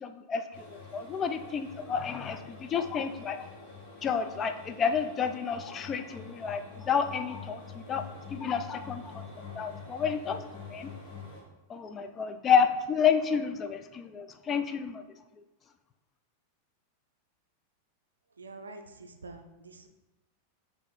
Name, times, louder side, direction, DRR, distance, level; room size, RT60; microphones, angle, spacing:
voice 1, 0.0-3.5 4.0-8.0 8.3-9.2 9.6-10.4 10.7-10.9 11.7-15.0, left 7 dB, 25° left, 9 dB, 0.3 m, -30 dB
sound 1, 0.5-11.4, left 5 dB, 50° left, 1.4 m, -46 dB
voice 2, 18.4-19.9, right 3 dB, 75° right, 6 dB, 0.4 m, -46 dB
4.9 x 2.5 x 4.0 m, 1.0 s
figure-of-eight pair, 90°, 0 cm